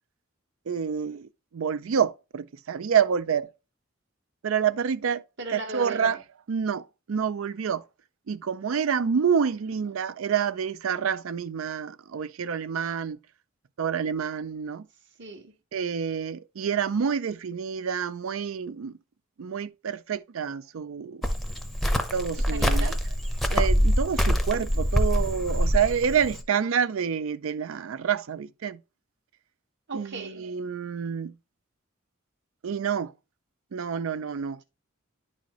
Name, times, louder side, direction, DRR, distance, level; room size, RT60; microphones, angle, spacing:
voice 1, 0.7-3.5 4.4-5.2 5.5-6.2 6.5-7.8 8.3-13.2 13.8-14.9 15.7-18.9 19.4-21.2 22.1-22.9 23.5-28.8 29.9-31.3 32.6-33.1 33.7-34.6, right 7 dB, 75° right, 0.4 m, -28 dB
voice 2, 5.4-6.2 15.2-15.5 22.5-23.0 29.9-30.5, right 3 dB, 60° right, 1.2 m, -37 dB
Cricket, 21.2-26.4, equal, ahead, 0.7 m, -24 dB
10.5 x 4.3 x 3.0 m
head